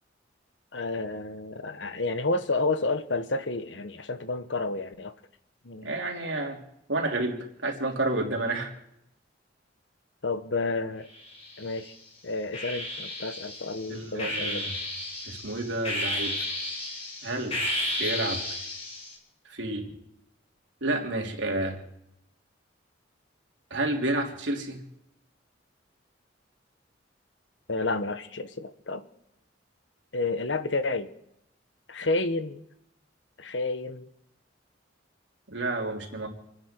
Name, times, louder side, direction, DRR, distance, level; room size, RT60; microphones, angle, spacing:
voice 1, 0.7-5.1 5.6-5.9 10.2-11.1 11.6-11.9 12.2-14.7 27.7-29.0 30.1-31.1 31.9-32.6 33.4-34.1, left 3 dB, 75° left, 11 dB, 1.2 m, -30 dB
voice 2, 5.8-6.6 6.9-8.7 13.9-14.7 15.2-16.3 17.2-17.6 18.0-18.4 19.5-19.9 20.8-21.8 23.7-24.8 35.5-36.3, right 2 dB, 80° right, 1 dB, 3.2 m, -30 dB
sound 1, 11.2-11.9 12.5-19.2, left 1 dB, 30° left, 4.3 m, -33 dB
28.5 x 10.5 x 4.5 m, 0.80 s
head